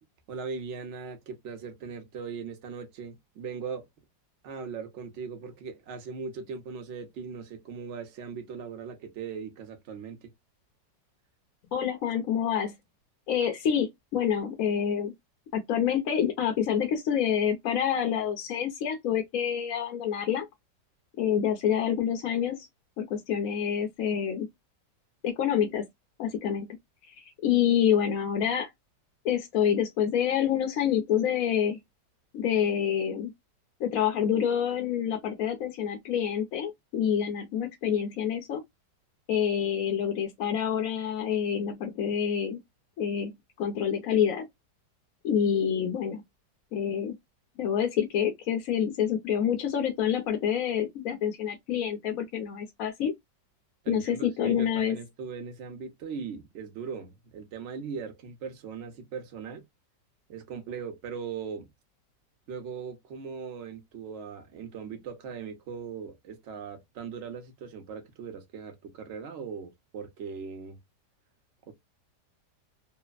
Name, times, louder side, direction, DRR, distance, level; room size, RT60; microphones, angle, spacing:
voice 1, 0.3-3.9 4.4-10.3 53.8-59.7 60.3-61.7 62.5-70.8 71.7-71.8, right 6 dB, 55° right, 0.8 m, -39 dB
voice 2, 11.7-12.7 13.3-15.1 15.5-20.5 21.2-22.6 23.0-24.5 25.2-25.9 26.2-26.7 27.2-28.7 29.2-31.8 32.3-33.3 33.8-38.6 39.3-42.6 43.0-44.5 45.2-46.2 46.7-47.1 47.6-53.1 53.9-55.0, left 8 dB, 65° left, 0.9 m, -27 dB
3.2 x 2.0 x 2.3 m
omnidirectional pair, 1.9 m